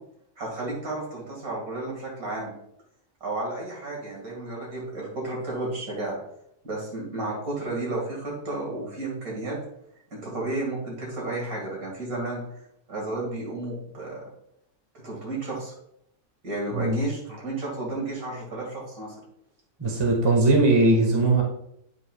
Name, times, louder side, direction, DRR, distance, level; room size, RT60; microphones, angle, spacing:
voice 1, 0.4-2.5 3.2-6.2 6.6-9.6 10.1-12.4 12.9-14.2 14.9-15.7 16.4-19.1, right 2 dB, 60° right, -3 dB, 2.5 m, -32 dB
voice 2, 19.8-21.4, right 2 dB, 20° right, 0 dB, 1.0 m, -20 dB
9.0 x 5.3 x 2.3 m, 0.75 s
omnidirectional pair, 1.7 m